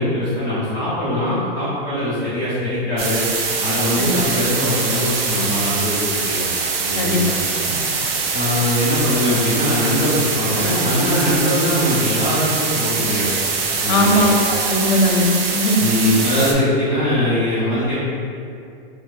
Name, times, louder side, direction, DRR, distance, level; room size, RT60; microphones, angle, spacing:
voice 1, 0.0-3.2 3.6-6.4 6.8-7.8 8.3-13.3 13.8-14.3 15.8-18.0, left 1 dB, 15° left, -13 dB, 1.0 m, -21 dB
sound 1, 3.0-16.5, right 4 dB, 75° right, 0.6 m, -23 dB
voice 2, 7.0-7.5 13.9-15.9, left 1 dB, 50° left, 0 dB, 0.6 m, -19 dB
4.4 x 2.4 x 2.3 m, 2.4 s
supercardioid pair, 170°, 30 cm